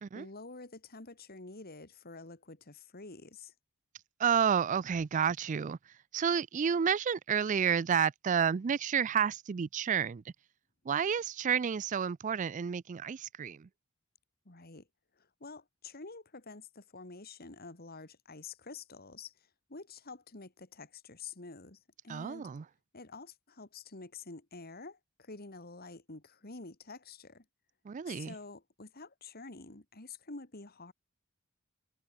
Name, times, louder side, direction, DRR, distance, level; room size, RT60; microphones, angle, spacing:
voice 1, 0.1-3.5 14.5-14.9 15.2-22.5 22.9-27.4 28.1-30.9, left 3 dB, 45° left, 2.4 m, -48 dB
voice 2, 4.2-5.8 6.1-10.2 10.8-13.7 22.1-22.6 27.8-28.3, right 7 dB, 35° right, 0.3 m, -30 dB
head